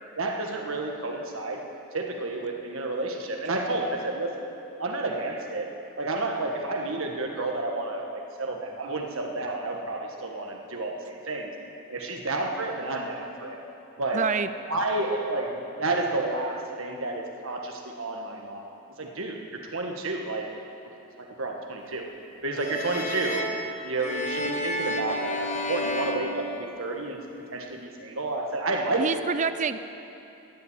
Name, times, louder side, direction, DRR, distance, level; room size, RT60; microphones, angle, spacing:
voice 1, 0.2-1.6 1.9-4.3 4.8-5.7 6.0-11.5 11.9-13.6 14.0-14.2 14.7-18.7 19.0-20.5 21.2-22.0 22.4-23.4 23.8-27.2 27.5-29.0 29.3-29.4, right 2 dB, 65° right, 2 dB, 1.5 m, -30 dB
voice 2, 14.1-14.5 29.0-29.8, right 5 dB, 35° right, 12 dB, 0.4 m, -26 dB
sound 1, 22.5-27.2, left 1 dB, 35° left, 0.8 m, -31 dB
13.0 x 7.5 x 8.9 m, 2.8 s
head